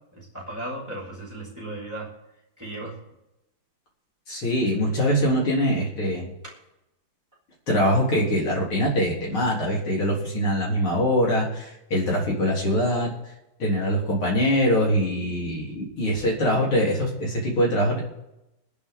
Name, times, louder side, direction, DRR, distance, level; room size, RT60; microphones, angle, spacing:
voice 1, 0.1-2.1 2.6-3.0, right 1 dB, 10° right, -6 dB, 4.8 m, -35 dB
voice 2, 4.3-6.2 7.7-13.1 13.6-18.0, equal, 85° left, -4 dB, 4.3 m, -23 dB
24.0 x 11.0 x 3.8 m, 0.93 s
omnidirectional pair, 2.3 m